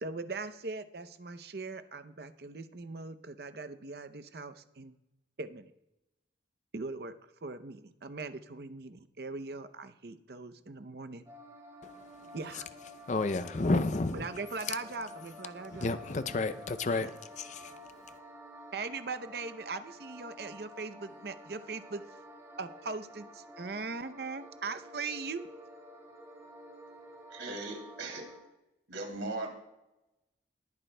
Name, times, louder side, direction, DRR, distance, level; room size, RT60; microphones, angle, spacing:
voice 1, 0.0-4.9 5.4-5.7 6.7-7.1 7.4-11.2 12.3-12.7 14.1-15.9 17.0-17.1 18.7-22.0 22.6-25.4, right 3 dB, 55° right, 0.6 m, -40 dB
sound 1, 11.3-28.4, equal, 20° right, 2.6 m, -51 dB
voice 2, 13.1-14.3 15.8-17.1 17.4-17.7, left 2 dB, 40° left, 0.5 m, -30 dB
voice 3, 27.3-28.2 28.9-29.5, right 2 dB, 85° right, 2.9 m, -38 dB
20.0 x 10.5 x 2.2 m
head